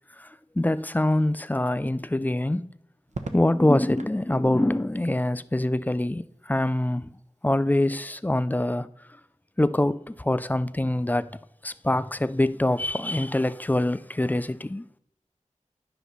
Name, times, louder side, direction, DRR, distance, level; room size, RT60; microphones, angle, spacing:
voice 1, 0.2-2.7 3.3-7.1 7.4-8.9 9.6-11.3 11.6-14.9, left 1 dB, 15° left, 0.4 m, -24 dB
Crackle, 3.1-4.2 5.8-6.4, right 3 dB, 65° right, 0.9 m, -39 dB
9.8 x 5.5 x 5.6 m
wide cardioid pair, 45°, 13 cm